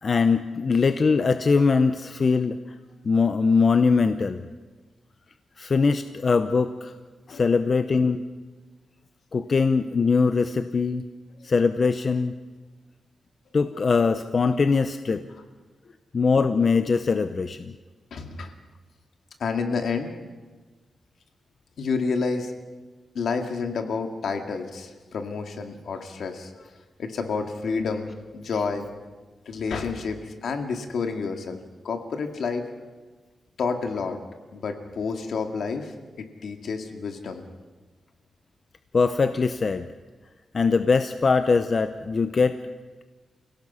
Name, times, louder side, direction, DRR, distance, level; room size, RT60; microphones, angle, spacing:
voice 1, 0.0-2.6 3.0-4.5 5.6-6.9 7.3-8.2 9.3-11.0 11.4-12.3 13.5-15.2 16.1-17.7 38.9-39.8 40.5-42.6, left 4 dB, 40° left, 9 dB, 0.7 m, -22 dB
voice 2, 18.1-18.5 19.4-20.1 21.8-22.5 23.1-26.5 27.0-28.9 29.5-31.6 31.8-32.6 33.6-34.2 34.5-35.9 36.4-37.4, left 4 dB, 70° left, 5 dB, 2.2 m, -29 dB
28.5 x 17.5 x 5.6 m, 1.3 s
wide cardioid pair, 145°, 0 cm